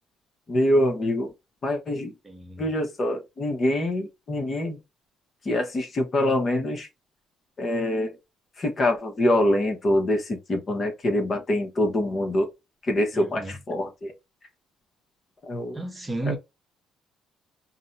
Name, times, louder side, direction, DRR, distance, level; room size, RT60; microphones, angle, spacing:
voice 1, 0.5-1.3 1.6-2.1 2.6-4.8 5.4-6.9 7.6-8.2 8.6-12.5 12.8-14.1 15.4-15.8 16.3-16.4, left 1 dB, 40° left, 0.9 m, -25 dB
voice 2, 2.2-2.7 13.1-13.6 15.7-16.4, right 3 dB, 20° right, 0.7 m, -33 dB
2.6 x 2.1 x 3.8 m
cardioid pair, 85°, 0 cm